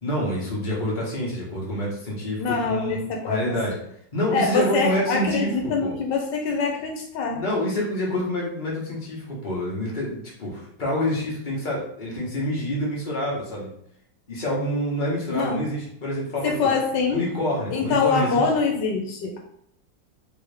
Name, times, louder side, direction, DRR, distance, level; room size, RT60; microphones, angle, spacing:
voice 1, 0.0-3.7 4.1-5.9 7.3-13.7 14.3-16.7 17.1-18.4, equal, 30° left, -4 dB, 1.1 m, -27 dB
voice 2, 2.4-3.5 4.3-7.4 15.3-15.6 16.4-17.2 17.7-19.4, left 4 dB, 80° left, 1 dB, 1.3 m, -24 dB
3.5 x 3.1 x 3.3 m, 0.70 s
omnidirectional pair, 1.9 m